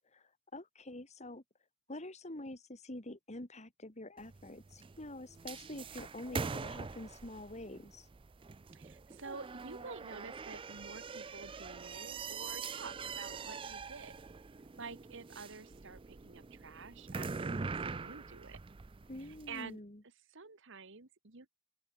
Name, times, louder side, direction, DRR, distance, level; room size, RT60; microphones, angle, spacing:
voice 1, 0.1-1.4 1.9-8.1 19.1-20.0, left 1 dB, 35° left, 2.7 m, -46 dB
sound 1, 4.2-19.6, right 4 dB, 25° right, 0.4 m, -44 dB
voice 2, 8.7-14.1 14.8-18.6 19.2-19.8 20.3-21.5, right 4 dB, 60° right, 1.7 m, -49 dB
head